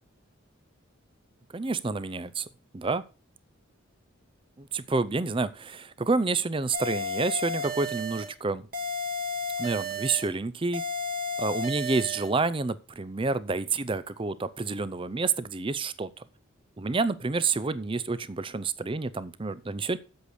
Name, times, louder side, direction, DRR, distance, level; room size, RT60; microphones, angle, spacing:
voice 1, 1.5-2.5 2.7-3.0 4.6-8.7 9.6-10.8 11.4-16.1 16.8-20.0, right 3 dB, 25° right, 15 dB, 0.5 m, -29 dB
sound 1, 6.7-8.3 8.7-10.3 10.7-12.3, left 2 dB, 45° right, 1.7 m, -33 dB
8.1 x 7.9 x 5.0 m, 0.34 s
head